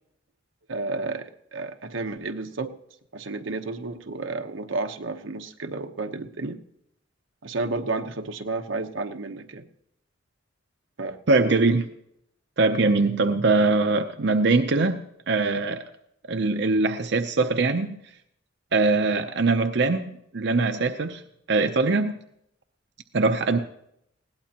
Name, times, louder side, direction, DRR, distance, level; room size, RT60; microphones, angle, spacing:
voice 1, 0.7-2.7 3.1-6.6 7.4-9.6 11.0-11.5, right 3 dB, 90° right, 6 dB, 1.0 m, -31 dB
voice 2, 11.3-11.9 12.6-15.0 15.3-15.8 16.2-18.0 18.7-21.2 21.5-22.2 23.1-23.6, right 3 dB, 60° right, 6 dB, 0.7 m, -22 dB
20.0 x 17.0 x 2.9 m, 0.76 s
head